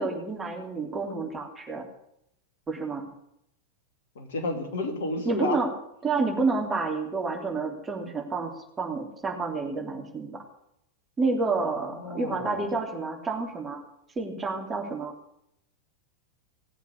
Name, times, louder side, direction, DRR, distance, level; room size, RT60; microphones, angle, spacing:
voice 1, 0.0-1.8 2.7-3.1 5.2-5.7 6.0-10.4 11.2-13.8 14.1-15.1, right 3 dB, 15° right, 1 dB, 3.3 m, -29 dB
voice 2, 4.1-5.6 11.9-12.7, left 2 dB, 60° left, 4 dB, 3.1 m, -31 dB
18.5 x 8.1 x 8.6 m, 0.77 s
figure-of-eight pair, 90°, 0 cm